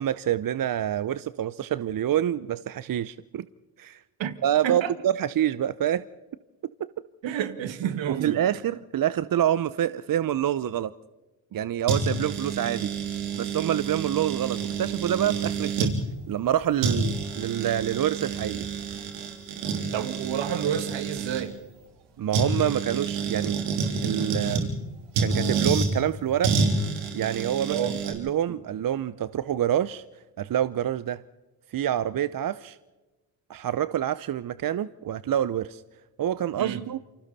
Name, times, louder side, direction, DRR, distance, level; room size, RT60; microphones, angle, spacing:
voice 1, 0.0-3.5 3.8-4.0 4.4-6.0 6.8-6.9 8.2-10.9 11.5-12.9 13.3-15.9 16.3-18.7 22.2-23.6 24.0-24.7 25.2-26.5 27.1-27.8 28.1-30.0 30.4-31.2 31.7-32.8 33.5-35.8 36.2-37.0, right 11 dB, 45° right, 0.8 m, -27 dB
voice 2, 4.6-5.0 7.2-8.6 19.9-21.6 27.7-28.0 36.6-36.9, right 9 dB, 65° right, 2.1 m, -30 dB
sound 1, 11.9-15.9 16.5-16.6 16.8-21.4 22.3-24.7 25.1-25.9 26.4-28.1, right 4 dB, 90° right, 3.7 m, -28 dB
28.5 x 25.5 x 4.2 m
hypercardioid pair, 55°, 48 cm